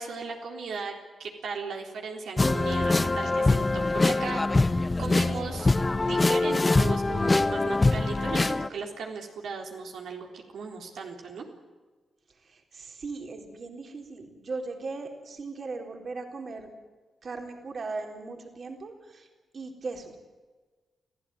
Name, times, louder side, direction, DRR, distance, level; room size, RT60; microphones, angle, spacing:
voice 1, 0.0-5.7 6.0-11.5, right 4 dB, 85° right, 1 dB, 3.8 m, -37 dB
sound 1, 2.4-8.7, left 2 dB, 20° left, 0.7 m, -24 dB
voice 2, 12.4-16.7 17.2-19.3 19.5-20.2, right 3 dB, 50° right, 3 dB, 4.0 m, -38 dB
29.0 x 16.0 x 9.3 m, 1.4 s
cardioid pair, 105°, 0 cm